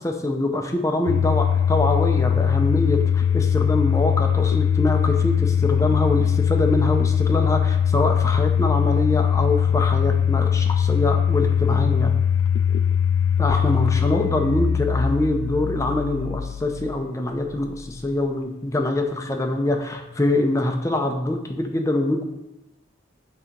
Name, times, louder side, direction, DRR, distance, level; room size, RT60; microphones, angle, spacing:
voice 1, 0.0-12.1 13.4-22.3, left 1 dB, 15° left, 4 dB, 0.5 m, -24 dB
Domestic sounds home sounds, 1.1-18.0, left 8 dB, 85° left, 0.3 m, -21 dB
6.8 x 2.9 x 5.1 m, 0.91 s
head